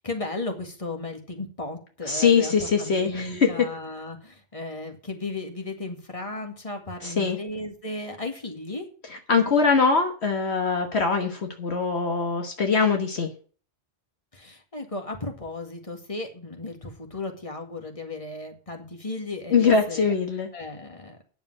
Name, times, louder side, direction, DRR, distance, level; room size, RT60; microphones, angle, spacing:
voice 1, 0.0-8.9 14.3-20.1 20.5-21.2, left 2 dB, 30° left, 4 dB, 2.2 m, -35 dB
voice 2, 2.1-3.5 7.0-7.4 9.3-13.3 19.5-20.5, left 5 dB, 65° left, 4 dB, 1.6 m, -22 dB
9.7 x 7.0 x 7.6 m, 0.40 s
omnidirectional pair, 1.2 m